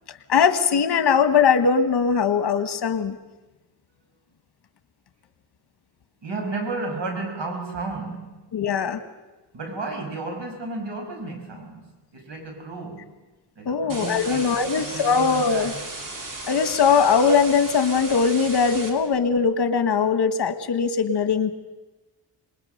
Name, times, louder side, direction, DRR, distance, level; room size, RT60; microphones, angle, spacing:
voice 1, 0.3-3.2 8.5-9.0 13.7-15.7 16.5-21.5, left 6 dB, 65° left, 10 dB, 1.6 m, -20 dB
voice 2, 6.2-8.4 9.5-13.2 13.6-15.8, right 3 dB, 80° right, 3 dB, 5.6 m, -33 dB
sound 1, 13.9-18.9, right 2 dB, 50° right, 3.2 m, -35 dB
26.5 x 21.0 x 6.6 m, 1.1 s
wide cardioid pair, 135°, 42 cm